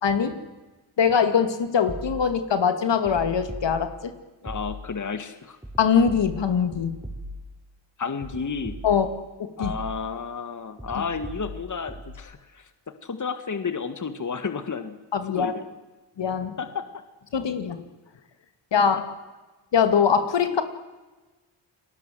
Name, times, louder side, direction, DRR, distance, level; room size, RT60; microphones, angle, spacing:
voice 1, 0.0-0.4 1.0-4.1 5.8-7.0 8.8-9.1 9.4-9.7 15.1-15.5 16.2-16.6 17.3-17.8 18.7-19.0 19.7-20.6, left 7 dB, 70° left, 9 dB, 2.5 m, -22 dB
sound 1, 1.9-2.5 3.0-4.1 4.5-5.1 5.6-7.7 8.2-9.3 9.6-10.2 10.8-12.2, equal, 10° right, 5.6 m, -39 dB
voice 2, 4.4-5.6 8.0-8.7 9.6-12.7 13.0-15.0 15.3-15.7 16.6-16.8 18.9-19.0, left 5 dB, 40° left, 10 dB, 2.0 m, -32 dB
29.5 x 19.5 x 7.8 m, 1.2 s
cardioid pair, 70°, 45 cm